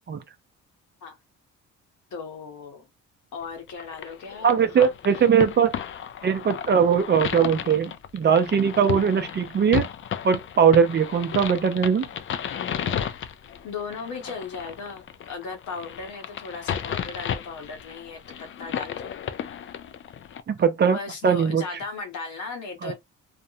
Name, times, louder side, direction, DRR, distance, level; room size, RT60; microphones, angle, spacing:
voice 1, 2.1-2.9 3.3-5.3 13.6-19.1 20.8-22.9, left 4 dB, 70° left, 1.0 m, -37 dB
sound 1, 3.7-20.4, left 9 dB, 45° left, 0.4 m, -34 dB
voice 2, 4.4-5.7 6.2-9.9 10.2-12.1 20.5-21.0 21.2-21.6 22.8-22.9, right 7 dB, 35° right, 0.5 m, -20 dB
2.4 x 2.0 x 2.7 m
cardioid pair, 90°, 30 cm